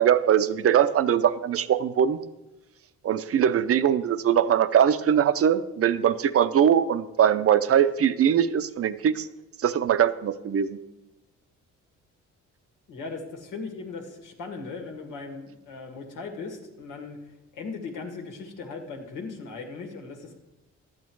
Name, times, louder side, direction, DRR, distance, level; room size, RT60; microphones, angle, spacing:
voice 1, 0.0-2.2 3.0-9.3 9.6-10.8, right 9 dB, 50° right, 13 dB, 0.6 m, -21 dB
voice 2, 12.9-17.2 17.5-20.3, left 4 dB, 85° left, 3 dB, 1.9 m, -38 dB
12.0 x 8.7 x 4.7 m, 1.0 s
cardioid pair, 90°, 30 cm